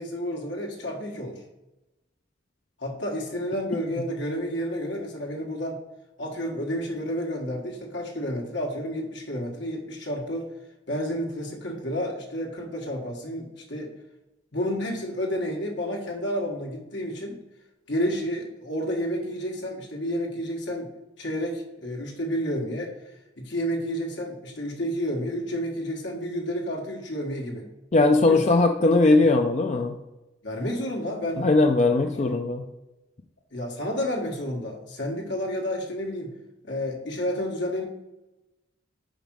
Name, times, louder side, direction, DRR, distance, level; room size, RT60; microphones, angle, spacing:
voice 1, 0.0-1.4 2.8-5.8 6.2-10.5 10.9-13.9 14.5-17.4 17.9-20.9 21.2-23.0 23.4-27.7 28.2-28.4 29.1-29.3 30.4-31.5 32.2-32.4 33.5-36.3 36.6-37.9, equal, 65° left, 1 dB, 1.6 m, -30 dB
voice 2, 27.9-29.9 31.4-32.6, left 2 dB, 35° left, 4 dB, 0.4 m, -19 dB
5.2 x 5.1 x 6.1 m, 0.98 s
head